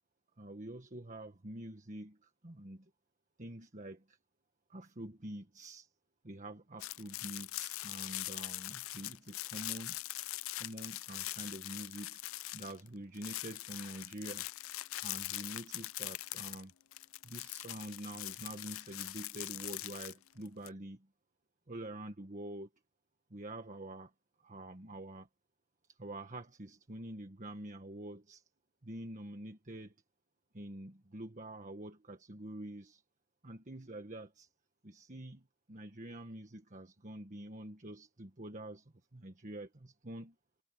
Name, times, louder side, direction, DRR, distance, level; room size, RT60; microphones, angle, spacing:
voice 1, 0.4-2.9 3.4-4.2 4.7-5.9 6.2-10.0 10.6-12.2 12.5-14.5 15.0-16.7 17.2-21.1 21.7-22.7 23.3-24.1 24.4-25.3 25.9-28.4 28.8-29.9 30.5-33.0 33.4-34.5 34.8-40.3, right 1 dB, 35° right, 1.5 m, -46 dB
sound 1, 6.8-12.9 13.1-20.7, left 17 dB, 70° left, 0.5 m, -42 dB
head